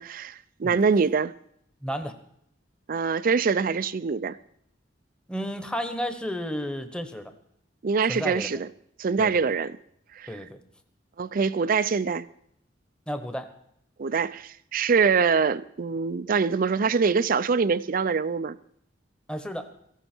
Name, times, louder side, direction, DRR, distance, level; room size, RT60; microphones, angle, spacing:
voice 1, 0.0-1.3 2.9-4.4 7.8-8.7 9.0-9.7 10.2-10.4 11.2-12.3 14.0-18.6, right 5 dB, 50° right, 0.5 m, -24 dB
voice 2, 1.8-2.1 5.3-7.3 8.1-8.5 9.2-9.4 10.3-10.6 13.1-13.5 19.3-19.7, equal, 5° left, 1.2 m, -32 dB
18.0 x 14.5 x 4.5 m
head